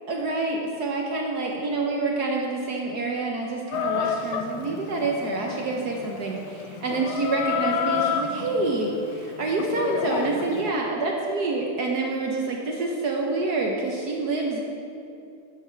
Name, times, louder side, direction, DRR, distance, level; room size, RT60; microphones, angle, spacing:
voice 1, 0.1-14.6, right 3 dB, 60° right, 0 dB, 1.1 m, -27 dB
Chicken rooster, 3.7-10.7, left 7 dB, 75° left, 1.4 m, -30 dB
8.2 x 7.6 x 5.7 m, 2.6 s
omnidirectional pair, 2.4 m